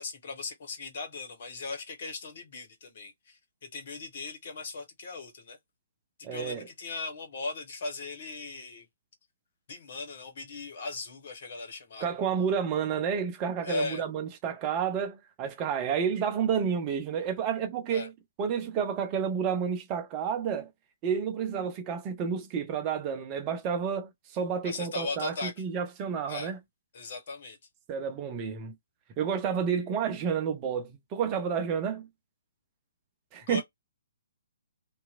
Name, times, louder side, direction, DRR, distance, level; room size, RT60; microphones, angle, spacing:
voice 1, 0.0-5.6 6.3-8.9 9.7-12.1 13.6-14.0 17.9-18.1 24.6-25.5 26.3-26.5 26.9-27.6 33.4-33.6, left 3 dB, 50° left, 1.2 m, -38 dB
voice 2, 6.2-6.7 12.0-18.1 18.4-20.7 21.0-26.6 27.9-28.7 29.2-32.1 33.3-33.6, right 7 dB, 25° right, 0.6 m, -30 dB
2.8 x 2.3 x 2.4 m
figure-of-eight pair, 125°, 0 cm